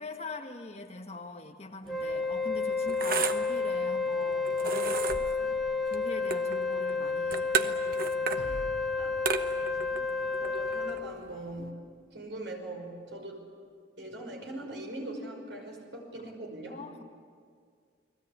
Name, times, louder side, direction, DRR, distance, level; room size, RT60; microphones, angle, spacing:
voice 1, 0.0-8.7 16.7-17.0, left 2 dB, 35° left, 3 dB, 1.7 m, -43 dB
Wind instrument woodwind instrument, 1.9-11.0, left 4 dB, ahead, 1.1 m, -31 dB
sound 1, 1.9-11.7, right 5 dB, 50° right, 1.1 m, -36 dB
sound 2, 8.4-11.7, left 1 dB, 85° left, 1.5 m, -48 dB
voice 2, 9.5-11.8 12.1-13.4 14.0-16.8, right 1 dB, 70° right, 2 dB, 5.7 m, -41 dB
30.0 x 20.5 x 8.6 m, 2.1 s
head